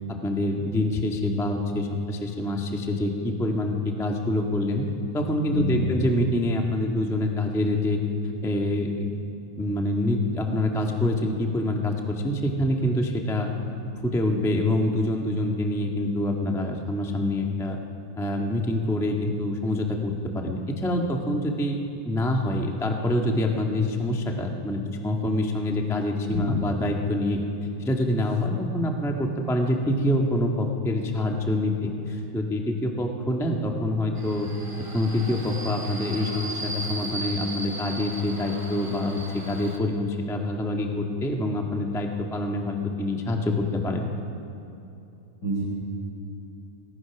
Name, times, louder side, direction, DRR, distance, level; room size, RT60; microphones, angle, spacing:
voice 1, 0.2-4.9 5.1-8.0 8.4-9.1 9.6-13.5 14.0-17.8 18.2-21.8 22.0-27.4 27.8-34.5 34.9-44.1, left 1 dB, 5° left, 1 dB, 0.5 m, -26 dB
voice 2, 5.5-5.9 26.3-26.5 45.4-45.6, equal, 30° left, -7 dB, 6.5 m, -27 dB
Subway metro underground, 34.2-39.8, right 2 dB, 15° right, 1.3 m, -36 dB
27.5 x 19.0 x 6.0 m, 2.7 s
omnidirectional pair, 3.6 m